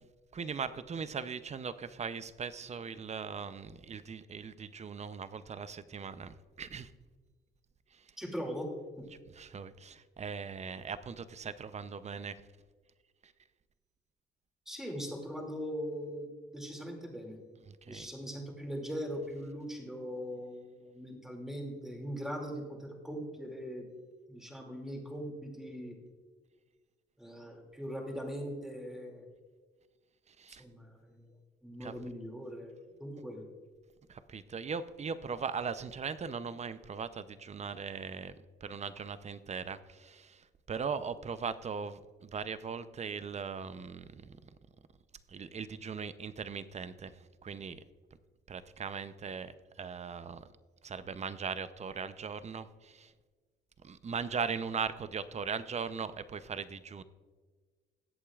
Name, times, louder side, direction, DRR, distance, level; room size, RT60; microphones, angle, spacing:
voice 1, 0.3-6.9 7.9-8.1 9.3-12.4 13.2-13.3 17.7-18.1 30.3-30.6 31.8-31.9 34.1-38.4 38.6-44.5 45.3-47.8 48.5-50.5 50.8-53.1 53.8-57.0, right 6 dB, 35° right, 13 dB, 0.7 m, -39 dB
voice 2, 8.2-8.7 9.0-9.1 14.7-16.3 16.5-17.4 17.8-23.9 24.3-26.0 27.2-29.3 30.6-31.3 31.6-32.7 33.0-33.5, equal, ahead, 0 dB, 2.5 m, -40 dB
20.5 x 8.4 x 2.4 m, 1.5 s
cardioid pair, 90°, 20 cm